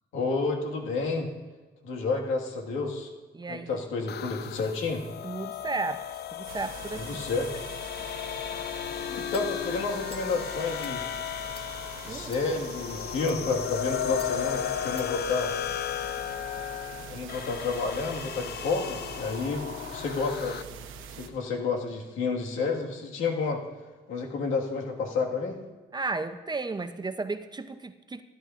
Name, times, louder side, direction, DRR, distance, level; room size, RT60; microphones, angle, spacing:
voice 1, 0.1-1.3 1.8-3.1 3.5-5.0 6.9-7.5 9.1-11.1 12.0-15.5 17.0-19.6 19.9-20.6 21.2-23.6 24.1-25.6, left 4 dB, 85° left, 1.8 m, -30 dB
voice 2, 3.3-3.8 5.2-7.3 12.1-12.3 25.9-28.2, right 3 dB, 20° right, 0.6 m, -34 dB
sound 1, 4.1-20.6, left 10 dB, 55° left, 0.4 m, -35 dB
sound 2, 6.5-21.3, right 6 dB, 85° right, 0.9 m, -44 dB
sound 3, 9.3-9.5 10.1-10.3 10.7-11.0 11.5-11.7 12.2-12.4 13.1-13.4 14.2-14.3 15.0-15.1, left 3 dB, 25° left, 1.4 m, -47 dB
16.0 x 11.0 x 2.5 m
cardioid pair, 90°, 20 cm